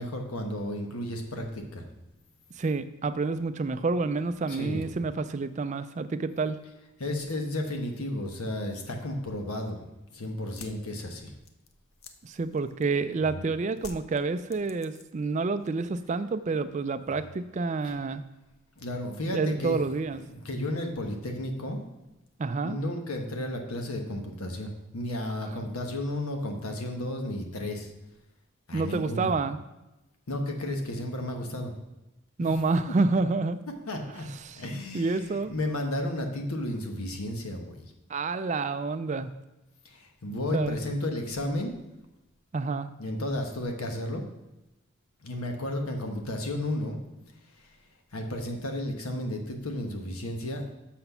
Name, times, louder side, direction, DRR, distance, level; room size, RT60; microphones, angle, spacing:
voice 1, 0.0-1.8 4.5-5.0 7.0-9.8 10.1-11.3 13.3-13.5 17.1-17.2 18.8-19.8 20.3-21.8 22.6-27.9 28.7-29.3 30.3-31.7 32.4-32.6 32.9-33.0 33.9-34.3 34.6-37.8 39.8-41.8 43.0-44.2 45.2-47.0 48.1-50.6, left 1 dB, 90° left, 3 dB, 1.3 m, -33 dB
voice 2, 2.6-6.6 12.2-18.2 19.3-20.2 22.4-22.8 25.4-25.6 28.7-29.6 32.4-33.6 34.4-34.6 34.9-35.5 38.1-39.3 40.5-40.8 42.5-42.9, right 3 dB, 35° right, 12 dB, 0.3 m, -28 dB
sound 1, 10.4-13.1 13.8-15.3 15.6-16.2, left 5 dB, 75° left, 0.7 m, -49 dB
6.6 x 6.0 x 5.7 m, 0.98 s
head